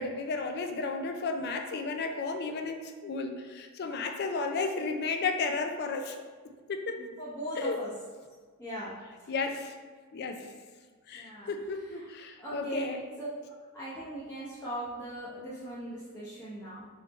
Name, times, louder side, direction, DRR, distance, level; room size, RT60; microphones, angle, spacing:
voice 1, 0.0-6.2 6.7-6.9 7.6-7.8 9.3-9.7 10.1-10.5 11.1-13.0, left 4 dB, 45° left, 5 dB, 0.3 m, -33 dB
voice 2, 6.9-7.9 8.6-8.9 9.2-9.6 11.1-11.5 11.8-12.1 12.4-12.9 13.2-13.3 13.7-16.9, right 1 dB, 10° left, -11 dB, 0.7 m, -39 dB
3.5 x 2.7 x 4.1 m, 1.5 s
head